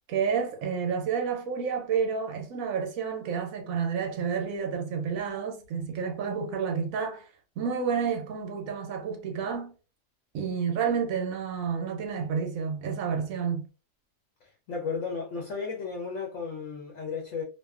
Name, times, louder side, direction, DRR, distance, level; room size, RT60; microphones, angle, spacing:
voice 1, 0.1-7.3 7.6-9.7 10.3-13.7, right 6 dB, 70° right, 0.9 m, -30 dB
voice 2, 14.7-17.4, left 5 dB, 65° left, 0.7 m, -34 dB
2.5 x 2.2 x 2.3 m
omnidirectional pair, 1.7 m